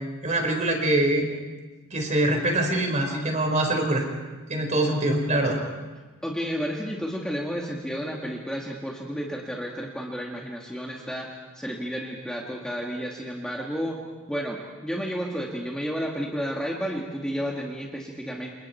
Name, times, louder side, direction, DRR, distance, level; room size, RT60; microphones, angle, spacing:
voice 1, 0.2-1.3 1.9-4.1 4.5-5.6, right 1 dB, 35° right, 2 dB, 4.7 m, -24 dB
voice 2, 6.2-11.3 11.5-14.0 14.3-18.5, equal, 5° left, -2 dB, 2.0 m, -31 dB
29.0 x 28.0 x 4.5 m, 1.3 s
head